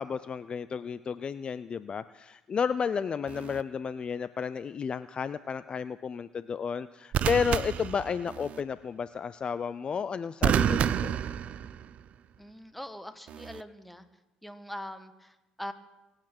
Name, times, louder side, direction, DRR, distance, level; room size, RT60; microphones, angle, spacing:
voice 1, 0.0-11.1, left 6 dB, 35° left, 15 dB, 0.4 m, -32 dB
sound 1, 3.3-3.6 7.1-8.6 10.4-12.1 13.3-13.6, right 9 dB, 50° right, 0.5 m, -29 dB
voice 2, 12.4-14.0 14.4-15.7, equal, 5° left, 9 dB, 1.4 m, -42 dB
23.5 x 9.0 x 6.1 m, 1.0 s
cardioid pair, 95°, 3 cm